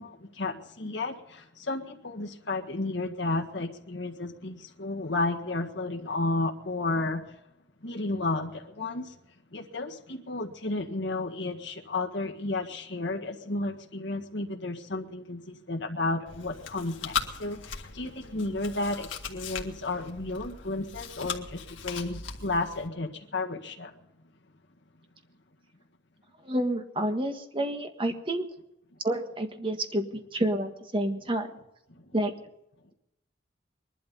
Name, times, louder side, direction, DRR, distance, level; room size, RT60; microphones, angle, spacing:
voice 1, 0.0-7.2 7.8-9.1 9.5-23.9, left 2 dB, 65° left, 3 dB, 1.7 m, -32 dB
Chewing mastication, 16.3-22.9, left 6 dB, 80° left, 1.9 m, -38 dB
voice 2, 26.4-28.5 29.0-31.5 32.1-32.3, right 1 dB, 30° right, 6 dB, 1.6 m, -29 dB
21.5 x 12.0 x 5.4 m, 0.87 s
head